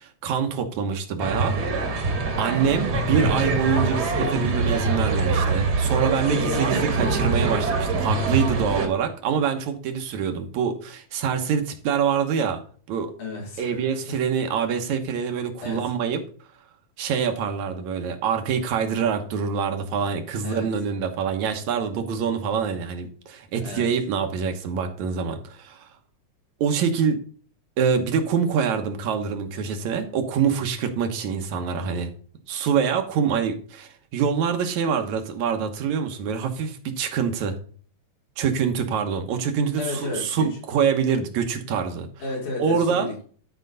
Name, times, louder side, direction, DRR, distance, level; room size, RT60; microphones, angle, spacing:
voice 1, 0.0-1.6 1.8-1.9 2.4-12.6 12.9-13.1 13.6-16.2 17.0-25.9 26.6-27.2 27.8-32.1 32.5-37.6 38.4-42.1 42.6-43.1, right 6 dB, 75° right, 6 dB, 2.5 m, -25 dB
sound 1, 1.2-8.9, right 3 dB, 45° right, 1.6 m, -24 dB
voice 2, 6.3-7.2 13.2-14.2 15.6-15.8 20.4-20.7 23.5-23.9 39.8-40.5 42.2-43.2, left 3 dB, 85° left, -2 dB, 4.9 m, -33 dB
11.5 x 5.2 x 4.0 m, 0.43 s
omnidirectional pair, 3.4 m